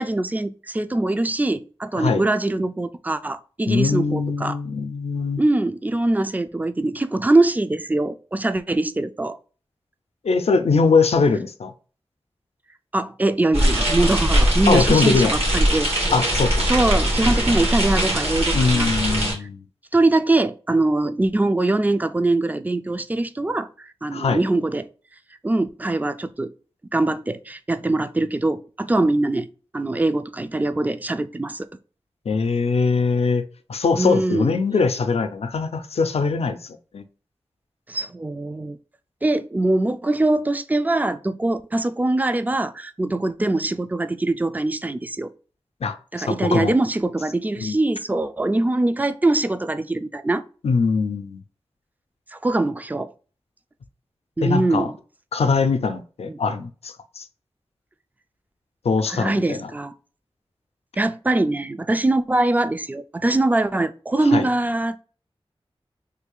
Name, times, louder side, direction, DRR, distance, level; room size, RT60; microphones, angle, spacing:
voice 1, 0.0-4.6 5.4-9.4 12.9-15.9 16.7-18.9 19.9-24.9 25.4-26.5 26.9-29.5 29.7-31.6 34.0-34.6 37.9-38.8 39.2-45.3 46.1-50.4 52.3-53.1 54.4-55.0 56.3-56.4 59.1-59.9 61.0-65.0, right 2 dB, 15° right, 0.3 m, -22 dB
voice 2, 3.7-5.4 10.2-11.7 14.7-15.3 16.1-16.7 18.5-19.6 24.1-24.4 32.3-33.4 33.7-37.0 45.8-46.7 47.6-47.8 50.6-51.4 54.4-54.9 55.3-57.2 58.8-59.7 64.3-64.5, left 4 dB, 90° left, 0.4 m, -22 dB
sound 1, 13.5-19.3, equal, 80° right, 1.6 m, -21 dB
3.2 x 2.3 x 3.6 m
wide cardioid pair, 75°, 10 cm